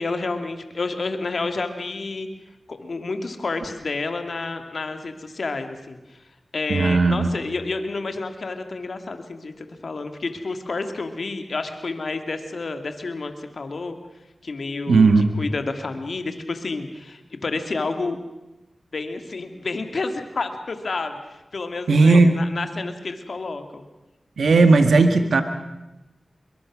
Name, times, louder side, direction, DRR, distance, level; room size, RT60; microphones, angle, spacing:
voice 1, 0.0-2.3 2.7-6.2 6.5-14.0 14.4-18.2 18.9-23.8, left 3 dB, 70° left, 7 dB, 2.4 m, -30 dB
voice 2, 6.7-7.3 14.9-15.4 21.9-22.4 24.4-25.4, right 3 dB, 85° right, 8 dB, 1.7 m, -16 dB
25.5 x 23.0 x 6.2 m, 1.0 s
cardioid pair, 40°, 0 cm